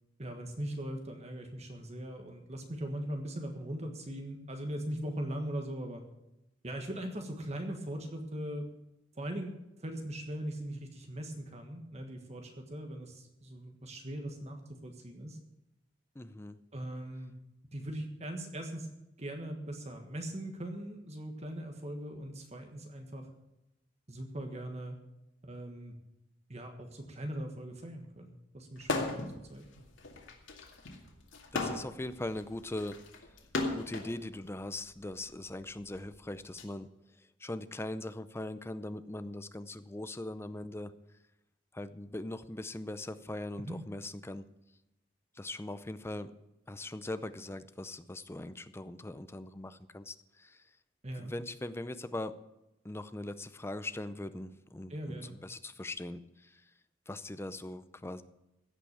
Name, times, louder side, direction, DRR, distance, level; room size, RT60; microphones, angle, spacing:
voice 1, 0.2-6.0 6.6-8.7 9.1-15.4 16.7-17.3 17.7-18.9 19.2-23.3 24.1-25.0 25.4-25.9 26.5-29.2 29.5-29.6 43.6-43.8 51.0-51.3 54.9-55.4, right 1 dB, 35° right, 4 dB, 1.5 m, -40 dB
voice 2, 16.2-16.6 31.5-33.0 33.7-36.9 37.4-40.9 41.7-44.5 45.4-46.3 46.7-50.6 51.2-52.4 52.8-56.6 57.1-58.2, left 1 dB, 15° left, 12 dB, 0.6 m, -40 dB
sound 1, 28.8-29.4 29.7-34.1 35.0-36.6, left 2 dB, 90° left, 2.2 m, -36 dB
16.0 x 5.9 x 8.6 m, 0.90 s
head